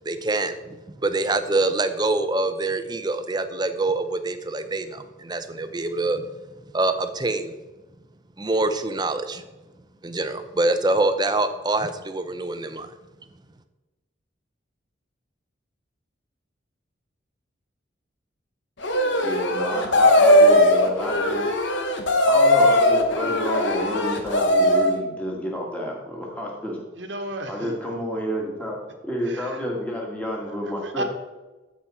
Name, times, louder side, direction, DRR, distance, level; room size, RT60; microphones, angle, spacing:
voice 1, 0.1-6.3 6.7-7.5 8.4-9.4 10.0-12.9, right 2 dB, 20° right, 10 dB, 0.6 m, -25 dB
sound 1, 18.8-25.0, left 1 dB, 70° left, 1.2 m, -19 dB
voice 2, 19.2-21.5 22.2-26.8 27.5-28.8 29.0-31.0, equal, 5° left, -1 dB, 1.8 m, -30 dB
voice 3, 27.0-27.7 29.3-29.6 30.4-31.0, right 1 dB, 70° right, 5 dB, 1.3 m, -34 dB
13.5 x 5.2 x 4.3 m, 1.2 s
head